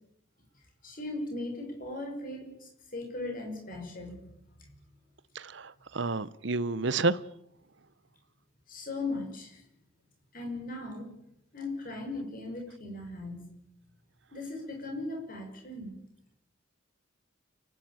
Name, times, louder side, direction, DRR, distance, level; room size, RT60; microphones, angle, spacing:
voice 1, 0.8-4.2 4.6-4.7 8.7-9.6 10.3-11.1 11.5-13.4 14.3-15.9, left 2 dB, 45° left, 6.6 m, -38 dB
voice 2, 5.3-7.2, right 3 dB, 60° right, 0.8 m, -30 dB
29.0 x 11.5 x 9.0 m
head